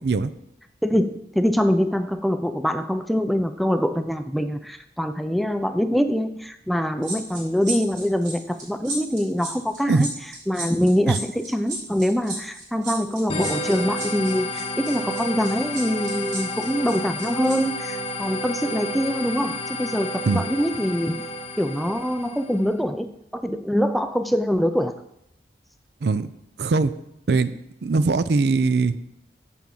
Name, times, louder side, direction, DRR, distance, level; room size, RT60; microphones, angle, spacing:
voice 1, 0.8-10.1 10.5-21.2 21.6-24.9, equal, ahead, 9 dB, 0.3 m, -24 dB
sound 1, 7.0-17.6 17.9-18.1, right 2 dB, 45° right, 2.5 m, -34 dB
sound 2, 13.3-22.7, left 1 dB, 30° left, 0.8 m, -31 dB
voice 2, 26.0-26.3 26.6-26.9 27.3-27.5 27.8-29.0, right 3 dB, 70° right, 14 dB, 0.4 m, -21 dB
6.1 x 5.8 x 7.1 m, 0.78 s
head